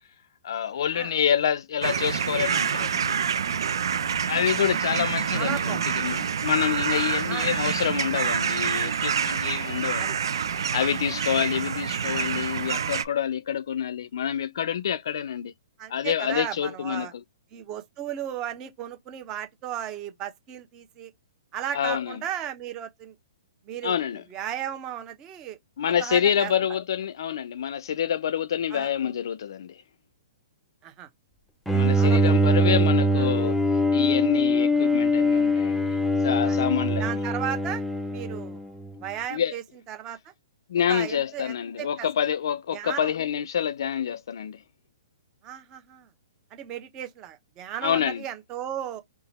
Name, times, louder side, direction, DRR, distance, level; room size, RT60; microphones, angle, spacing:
voice 1, 0.4-3.2 4.3-10.2 10.5-15.5 15.9-17.2 21.7-22.2 23.8-24.2 25.8-29.8 31.7-33.6 33.9-36.0 36.2-37.2 39.3-39.6 40.7-44.6 47.8-48.2, left 9 dB, 65° left, 0.4 m, -27 dB
sound 1, 1.8-13.1, right 7 dB, 75° right, 0.5 m, -27 dB
voice 2, 4.1-4.5 5.3-5.8 7.3-7.5 10.0-10.2 15.8-17.1 17.5-21.1 21.5-23.1 23.7-23.9 24.3-25.6 25.8-26.5 28.7-28.9 30.8-31.1 31.9-32.4 33.2-33.3 36.4-36.6 37.0-37.8 38.1-38.6 39.0-39.6 39.9-40.3 40.9-42.1 42.7-43.1 45.4-46.1 46.5-49.0, right 10 dB, 25° right, 0.9 m, -35 dB
Bowed string instrument, 31.7-38.9, equal, ahead, 0.4 m, -23 dB
2.8 x 2.4 x 4.1 m
hypercardioid pair, 145°, 2 cm